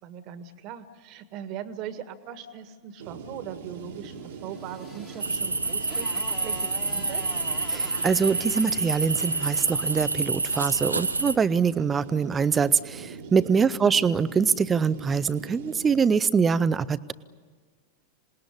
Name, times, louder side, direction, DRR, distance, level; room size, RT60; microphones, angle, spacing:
voice 1, 0.0-4.1 4.4-6.1 6.4-7.2 13.4-13.7, right 9 dB, 40° right, 11 dB, 1.8 m, -40 dB
sound 1, 3.0-16.0, right 5 dB, 60° right, 1.9 m, -42 dB
Motorcycle, 4.0-10.1, left 3 dB, 15° left, 2.0 m, -46 dB
sound 2, 5.2-11.3, right 3 dB, 80° right, 0.9 m, -28 dB
voice 2, 7.7-17.1, right 6 dB, 20° right, 16 dB, 0.8 m, -24 dB
27.0 x 20.0 x 9.9 m, 1.5 s
figure-of-eight pair, 90°, 0 cm